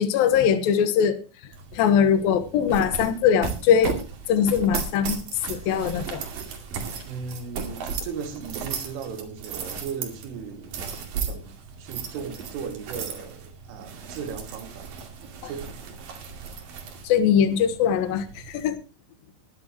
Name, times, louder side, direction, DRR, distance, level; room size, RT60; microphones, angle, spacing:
voice 1, 0.0-4.0 4.3-5.2 5.5-6.2 15.4-15.5 17.0-18.8, left 8 dB, 65° left, 2.4 m, -22 dB
sound 1, 1.5-18.7, right 6 dB, 50° right, 3.7 m, -36 dB
voice 2, 7.0-11.5 11.8-15.0 15.4-15.8, right 6 dB, 80° right, 4.9 m, -37 dB
20.5 x 11.5 x 3.0 m
omnidirectional pair, 5.7 m